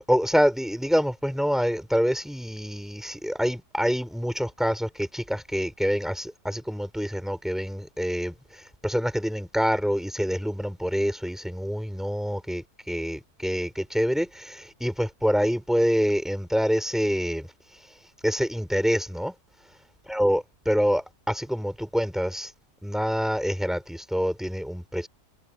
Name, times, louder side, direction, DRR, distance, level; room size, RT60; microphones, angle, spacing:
voice 1, 0.1-17.5 18.2-19.3 20.1-22.5 22.8-25.1, equal, ahead, 3.5 m, -26 dB
omnidirectional pair, 1.7 m